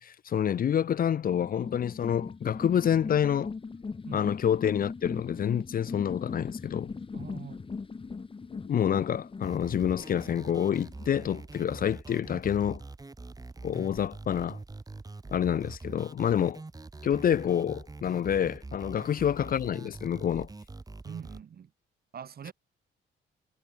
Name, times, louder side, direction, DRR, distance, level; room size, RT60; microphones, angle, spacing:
voice 1, 0.0-3.5 4.1-6.9 8.5-12.8 13.6-14.6 15.3-16.6 17.0-20.5, left 9 dB, 45° left, 0.6 m, -28 dB
sound 1, 1.3-11.3, left 4 dB, 25° left, 1.4 m, -39 dB
voice 2, 7.1-7.6 19.0-19.1 21.0-21.7 22.1-22.5, right 8 dB, 50° right, 2.2 m, -43 dB
sound 2, 9.4-21.4, right 3 dB, 20° right, 1.9 m, -44 dB
cardioid pair, 90°, 20 cm